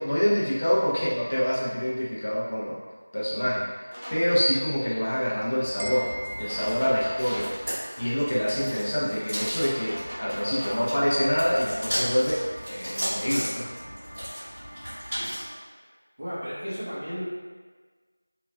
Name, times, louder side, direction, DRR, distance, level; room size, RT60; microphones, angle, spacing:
voice 1, 0.0-2.8 3.1-3.6 4.1-6.1 6.4-7.5 8.0-13.7, equal, 25° left, -6 dB, 0.4 m, -26 dB
sound 1, 3.8-4.3 6.5-7.6 9.4-10.9, equal, 55° right, 0.9 m, -39 dB
sound 2, 5.6-15.5, equal, 5° right, 1.3 m, -35 dB
sound 3, 5.8-7.8, equal, 80° right, 0.4 m, -39 dB
voice 2, 15.1-15.9 16.2-17.3, equal, 25° right, -11 dB, 0.7 m, -36 dB
3.0 x 2.4 x 2.2 m, 1.4 s
figure-of-eight pair, 180°, 0 cm